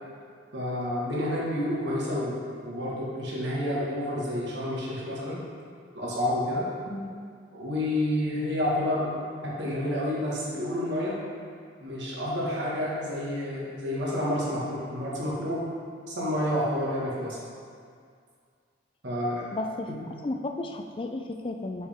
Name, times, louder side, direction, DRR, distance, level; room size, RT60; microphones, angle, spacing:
voice 1, 0.5-5.4 5.9-6.6 7.5-9.1 9.4-11.1 11.8-15.6 16.1-17.4 19.0-19.4 19.9-20.0, left 1 dB, 70° right, -6 dB, 1.7 m, -29 dB
voice 2, 19.5-21.9, left 2 dB, 30° left, 4 dB, 0.3 m, -34 dB
6.5 x 5.3 x 3.6 m, 2.2 s
head